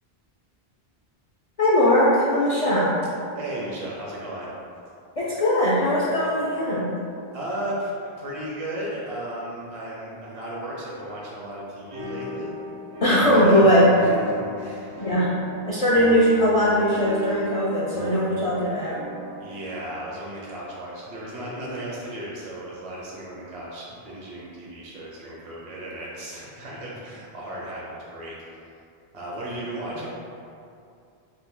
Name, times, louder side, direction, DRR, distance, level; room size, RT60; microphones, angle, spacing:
voice 1, 1.6-2.9 5.2-6.8 13.0-13.9 15.0-15.3 15.6-19.0 29.9-30.0, equal, 50° left, -8 dB, 0.4 m, -20 dB
voice 2, 3.3-4.5 7.3-12.5 13.2-13.7 14.0-15.1 19.4-28.3 29.1-30.1, right 1 dB, 45° right, -5 dB, 0.5 m, -35 dB
sound 1, 11.9-19.7, left 1 dB, 90° right, 1.2 m, -36 dB
2.6 x 2.6 x 3.7 m, 2.5 s
omnidirectional pair, 1.1 m